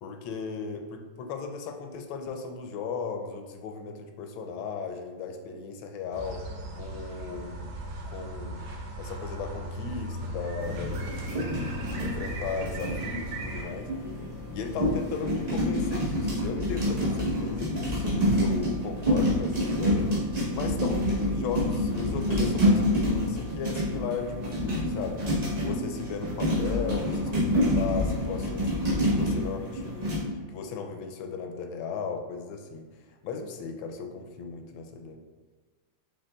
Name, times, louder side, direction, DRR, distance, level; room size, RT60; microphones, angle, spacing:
voice 1, 0.0-6.5 6.7-7.8 8.1-8.7 9.0-13.9 14.5-20.1 20.5-28.7 29.0-32.9 33.2-35.2, left 5 dB, 80° left, 4 dB, 1.3 m, -36 dB
Yorkshire Moors, 6.1-13.6, right 1 dB, 85° right, 1.5 m, -37 dB
sound 1, 10.6-30.2, equal, 40° right, 0.5 m, -27 dB
6.5 x 3.3 x 2.3 m, 1.3 s
omnidirectional pair, 2.1 m